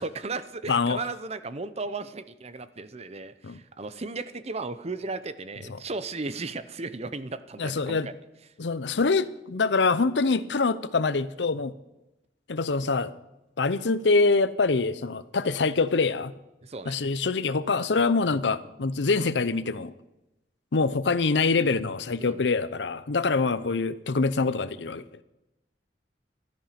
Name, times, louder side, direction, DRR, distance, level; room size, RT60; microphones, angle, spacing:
voice 1, 0.0-8.1 16.6-17.0 22.2-22.4, right 3 dB, 35° right, 13 dB, 0.8 m, -35 dB
voice 2, 0.7-1.0 3.4-3.6 7.6-8.1 8.6-11.7 12.5-13.1 13.6-16.3 16.9-19.9 20.7-25.0, left 4 dB, 75° left, 15 dB, 0.7 m, -25 dB
15.5 x 13.0 x 5.9 m, 0.96 s
head